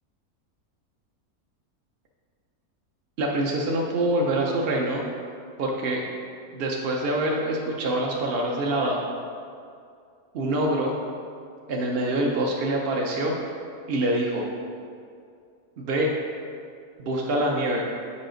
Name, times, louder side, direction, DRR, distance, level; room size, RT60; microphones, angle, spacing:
voice 1, 3.2-5.0 5.6-6.0 6.5-9.0 10.3-10.9 11.7-13.4 13.9-14.5 15.8-16.1 17.0-17.9, right 1 dB, 60° right, -1 dB, 0.7 m, -25 dB
7.3 x 4.9 x 3.8 m, 2.3 s
omnidirectional pair, 1.6 m